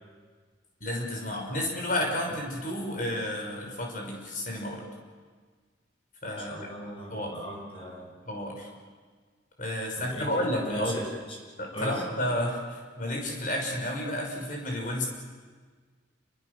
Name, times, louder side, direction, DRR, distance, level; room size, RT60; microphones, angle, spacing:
voice 1, 0.8-4.8 6.2-6.7 7.1-7.4 8.3-8.7 9.6-11.1 11.6-15.1, left 1 dB, 45° left, 1 dB, 5.6 m, -31 dB
voice 2, 6.4-8.1 10.0-11.4 11.7-12.0, equal, 30° left, -1 dB, 5.9 m, -38 dB
28.5 x 23.5 x 6.8 m, 1.5 s
head